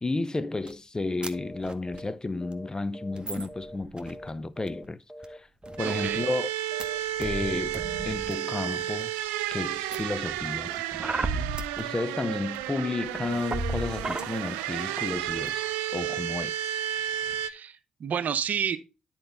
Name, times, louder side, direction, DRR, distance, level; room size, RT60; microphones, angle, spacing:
voice 1, 0.0-5.0 5.3-5.5 5.8-6.5 7.2-9.1 9.5-10.7 11.2-11.5 11.8-16.8, left 3 dB, 25° left, 0.6 m, -32 dB
sound 1, 0.7-0.8 1.2-1.3 1.5-2.0 2.5-2.6 3.1-4.3 4.7-4.9 5.2-5.3 5.6-6.2 6.8-6.9 7.2-8.3 8.8-9.3 9.9-11.8 12.5-12.6 13.0-14.2 14.8-14.9 15.1-15.5, right 2 dB, 30° right, 1.0 m, -35 dB
sound 2, 1.3-1.6 1.9-2.1 2.4-3.8 4.0-4.3 4.6-4.8 5.1-5.4 5.6-5.9 6.2-6.5 6.7-7.0 7.2-7.5 7.8-8.1, equal, 5° right, 1.7 m, -44 dB
voice 2, 5.8-6.2 11.2-11.5 17.4-18.8, right 7 dB, 60° right, 0.7 m, -31 dB
sound 3, 5.8-17.5, right 12 dB, 85° right, 0.4 m, -32 dB
9.9 x 4.5 x 3.7 m
hypercardioid pair, 45°, 3 cm